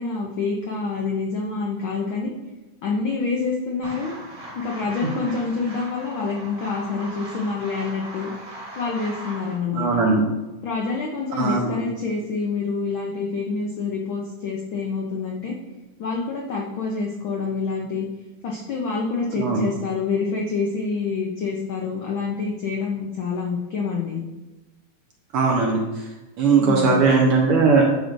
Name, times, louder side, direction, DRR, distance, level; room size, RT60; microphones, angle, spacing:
voice 1, 0.0-2.3 2.8-4.1 4.5-8.3 8.8-10.0 10.6-15.5 16.0-18.1 18.4-24.2 26.6-27.0, left 4 dB, 85° left, -2 dB, 1.1 m, -27 dB
sound 1, 3.8-9.6, right 1 dB, 30° right, 1.6 m, -38 dB
voice 2, 9.7-10.2 11.4-11.7 19.3-19.7 25.3-26.0 26.4-27.8, right 4 dB, 65° right, -1 dB, 1.5 m, -19 dB
10.5 x 6.2 x 2.6 m, 1.1 s
omnidirectional pair, 3.3 m